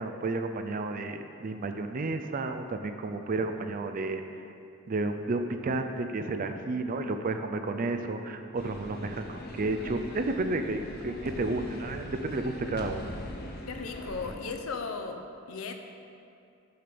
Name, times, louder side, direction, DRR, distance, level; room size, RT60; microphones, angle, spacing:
voice 1, 0.0-4.2 4.9-13.1, right 2 dB, 40° right, 7 dB, 0.4 m, -32 dB
sound 1, 8.6-14.4, left 1 dB, 50° left, 0.8 m, -41 dB
voice 2, 13.7-15.2 15.5-15.7, left 4 dB, 85° left, 5 dB, 0.7 m, -36 dB
6.6 x 5.1 x 6.0 m, 2.6 s
head